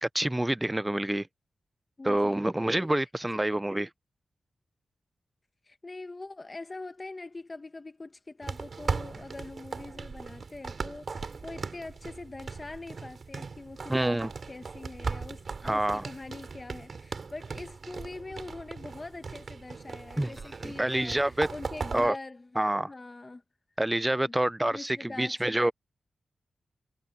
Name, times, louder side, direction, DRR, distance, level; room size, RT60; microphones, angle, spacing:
voice 1, 0.0-1.3 2.0-3.9 13.9-14.3 15.6-16.0 20.2-20.3 20.6-21.5 21.9-22.2 22.6-22.9 23.8-25.7, right 1 dB, 15° right, 0.4 m, -27 dB
voice 2, 2.0-2.5 5.7-22.6 22.9-23.4 24.3-24.4 24.7-25.7, left 2 dB, 30° left, 1.3 m, -43 dB
sound 1, 8.4-22.1, right 4 dB, 60° right, 2.9 m, -38 dB
cardioid pair, 70°, 0 cm